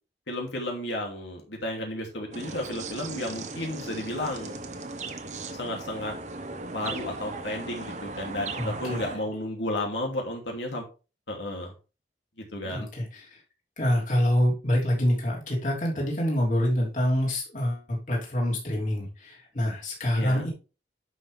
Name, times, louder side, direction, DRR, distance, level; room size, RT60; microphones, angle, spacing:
voice 1, 0.3-4.5 5.6-6.2 6.6-10.8 11.3-11.7 12.5-12.9 20.1-20.4, left 1 dB, 90° left, 1 dB, 2.8 m, -33 dB
sound 1, 2.3-9.2, right 3 dB, 40° right, 1.0 m, -37 dB
voice 2, 8.5-9.0 12.6-13.3 13.8-20.5, equal, 45° left, -3 dB, 3.4 m, -26 dB
11.0 x 5.9 x 3.5 m, 0.32 s
head